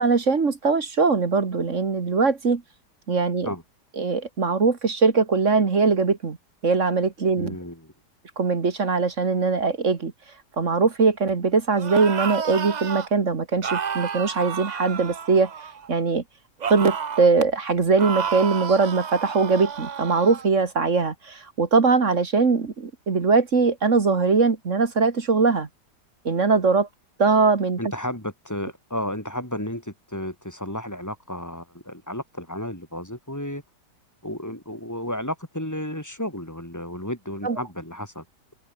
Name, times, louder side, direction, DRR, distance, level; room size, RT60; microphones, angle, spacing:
voice 1, 0.0-2.6 3.1-3.5 4.0-6.4 6.6-7.6 8.4-10.1 10.6-15.5 15.9-16.2 16.7-25.7 26.3-26.9 27.2-27.8 37.4-37.6, right 4 dB, 45° right, 2.0 m, -21 dB
voice 2, 7.4-7.9 27.8-33.6 34.2-38.2, left 1 dB, 10° left, 4.6 m, -32 dB
sound 1, 11.7-13.1 13.6-15.9 16.6-17.3 18.0-20.5, right 7 dB, 60° right, 0.4 m, -31 dB
omnidirectional pair, 1.9 m